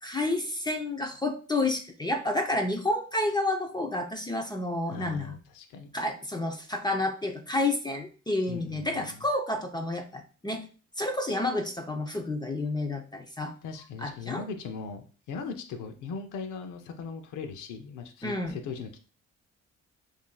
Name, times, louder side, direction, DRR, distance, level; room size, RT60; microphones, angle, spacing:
voice 1, 0.0-5.4 5.9-10.6 11.0-13.5 14.0-14.4 18.2-18.6, left 2 dB, 15° left, 3 dB, 0.6 m, -30 dB
voice 2, 4.9-5.9 8.5-9.2 13.6-19.0, left 5 dB, 90° left, 5 dB, 0.7 m, -39 dB
7.1 x 2.7 x 2.3 m, 0.37 s
cardioid pair, 90°, 30 cm